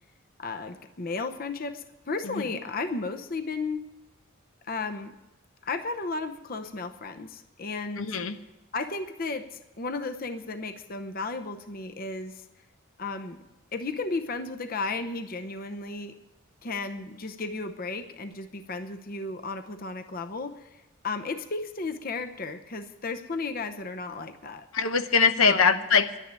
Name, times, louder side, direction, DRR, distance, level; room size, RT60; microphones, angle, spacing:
voice 1, 0.4-3.8 4.6-5.1 5.6-8.2 8.7-12.5 13.0-13.4 13.7-16.2 16.6-20.8 21.0-24.8 25.4-25.8, left 3 dB, 45° left, 7 dB, 0.8 m, -34 dB
voice 2, 8.0-8.4 24.7-26.2, left 5 dB, 80° left, 9 dB, 0.9 m, -22 dB
11.5 x 10.0 x 8.8 m, 1.0 s
head